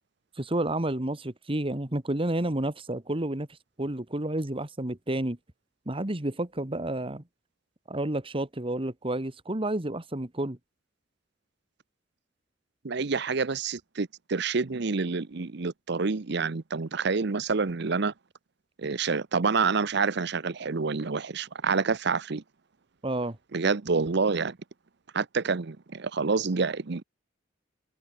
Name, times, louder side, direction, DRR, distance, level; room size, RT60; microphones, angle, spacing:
voice 1, 0.3-5.4 5.8-7.2 7.9-10.6 23.0-23.4, right 1 dB, 30° right, 1.7 m, -30 dB
voice 2, 12.8-18.1 18.8-22.4 23.5-24.6 25.1-27.0, right 4 dB, 65° right, 0.8 m, -28 dB
head